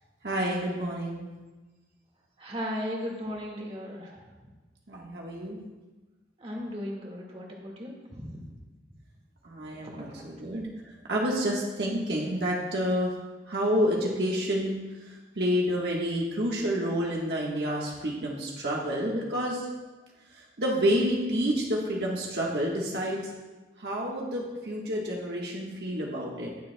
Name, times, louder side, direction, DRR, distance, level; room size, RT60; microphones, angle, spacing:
voice 1, 0.2-1.3 4.9-5.6 9.4-10.7 11.1-13.1 13.5-19.7 20.3-23.2 23.8-26.5, equal, 65° right, -3 dB, 1.3 m, -29 dB
voice 2, 2.4-4.2 6.4-8.5 9.8-10.2, equal, 35° right, -2 dB, 1.8 m, -36 dB
19.0 x 7.1 x 2.2 m, 1.2 s
head